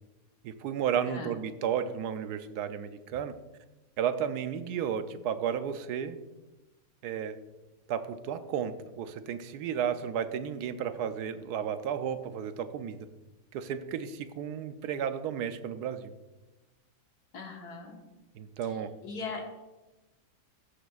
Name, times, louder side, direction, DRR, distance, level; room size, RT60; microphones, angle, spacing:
voice 1, 0.4-3.3 4.0-6.2 7.0-7.4 7.9-13.1 13.5-16.1 18.4-18.9, right 8 dB, 75° right, 10 dB, 1.1 m, -33 dB
voice 2, 17.3-18.0 18.6-18.8 19.0-19.4, left 4 dB, 70° left, 2 dB, 1.9 m, -39 dB
15.0 x 6.8 x 2.4 m, 1.1 s
omnidirectional pair, 1.8 m